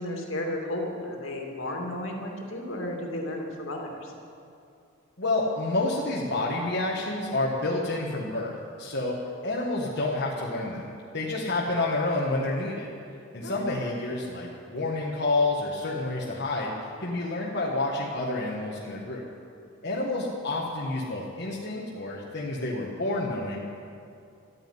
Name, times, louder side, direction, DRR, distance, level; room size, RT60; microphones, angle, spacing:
voice 1, 0.0-4.1 13.4-13.5 19.9-20.0, left 1 dB, 70° left, 0 dB, 2.5 m, -33 dB
voice 2, 5.2-9.2 9.4-12.9 13.3-19.2 19.8-23.6, left 2 dB, 55° left, -4 dB, 1.5 m, -29 dB
13.0 x 9.6 x 9.6 m, 2.5 s
head